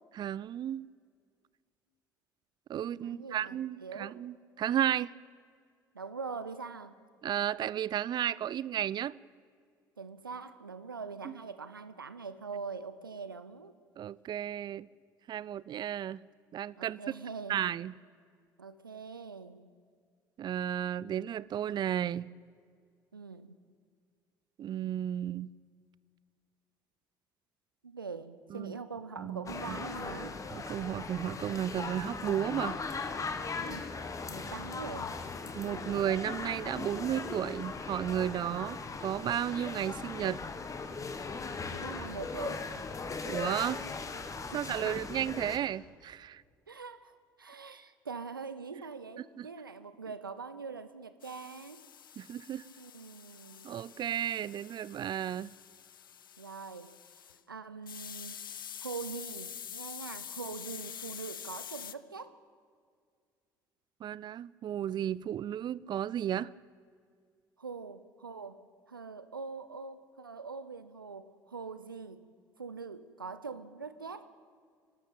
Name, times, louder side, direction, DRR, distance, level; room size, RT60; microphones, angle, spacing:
voice 1, 0.2-0.9 2.7-5.1 7.2-9.2 11.2-11.3 14.0-14.9 15.3-16.2 16.5-17.0 17.5-18.0 20.4-22.3 24.6-25.5 28.5-28.7 29.2-29.8 30.5-32.8 35.5-40.4 43.2-43.8 44.5-46.4 49.4-49.5 52.2-52.6 53.6-55.5 64.0-66.5, right 10 dB, 40° right, 0.5 m, -33 dB
voice 2, 3.0-4.2 5.9-7.0 10.0-13.7 16.8-17.7 18.6-19.6 23.1-23.6 27.8-30.4 33.6-33.9 34.3-35.1 41.7-42.7 44.5-44.8 46.7-51.8 52.8-53.8 56.4-56.9 57.5-58.4 58.8-62.3 67.6-72.2 72.6-74.3, right 5 dB, 85° right, 0.8 m, -43 dB
sound 1, 29.5-45.6, left 4 dB, 30° left, 2.0 m, -39 dB
sound 2, 51.2-57.4 57.9-61.9, left 9 dB, 80° left, 0.5 m, -46 dB
26.0 x 12.5 x 8.6 m
figure-of-eight pair, 55°, 11 cm